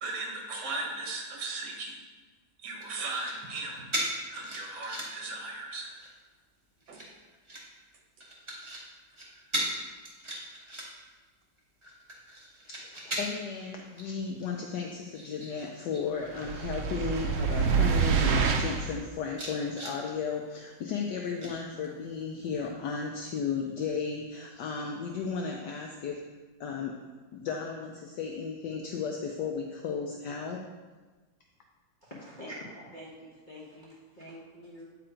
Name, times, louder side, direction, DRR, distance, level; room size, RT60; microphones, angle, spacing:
voice 1, 0.0-2.0 2.6-3.9 4.3-5.9 6.9-7.0 9.3-9.6, right 3 dB, 60° right, 0 dB, 1.8 m, -37 dB
sound 1, 2.8-3.6 3.9-5.3 5.7-6.2 6.8-7.6 8.2-8.8 9.1-9.2 9.5-9.7 10.0-11.1 11.6-13.5 14.0-14.1 14.5-16.0 16.3-16.7 17.3-17.4 17.7-18.3 18.8-18.9 19.3-20.0 21.4-22.1 22.5-22.7, right 1 dB, 20° right, 1.0 m, -38 dB
voice 2, 12.7-26.2 26.6-27.0 27.3-30.6, left 5 dB, 70° left, 1 dB, 1.1 m, -34 dB
sound 2, 16.4-19.0, right 6 dB, 90° right, 0.6 m, -26 dB
voice 3, 32.0-34.8, equal, 30° left, -7 dB, 1.2 m, -46 dB
9.0 x 3.8 x 4.4 m, 1.3 s
omnidirectional pair, 2.1 m